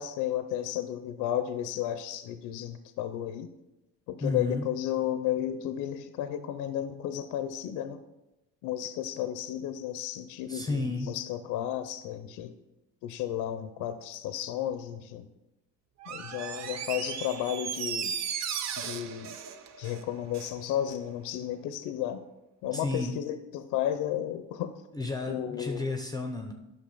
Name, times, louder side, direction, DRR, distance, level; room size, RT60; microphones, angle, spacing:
voice 1, 0.0-3.5 4.1-8.0 8.6-12.6 13.0-15.3 16.1-18.1 18.8-19.4 19.8-22.2 22.6-24.7 25.3-25.9, left 11 dB, 75° left, 11 dB, 0.5 m, -33 dB
voice 2, 4.2-4.7 10.5-11.1 22.7-23.2 24.9-26.5, left 3 dB, 10° left, 4 dB, 0.6 m, -32 dB
Door, 16.0-20.6 20.9-21.0, right 7 dB, 55° right, 0.7 m, -36 dB
8.7 x 6.0 x 3.9 m, 0.97 s
cardioid pair, 105°, 31 cm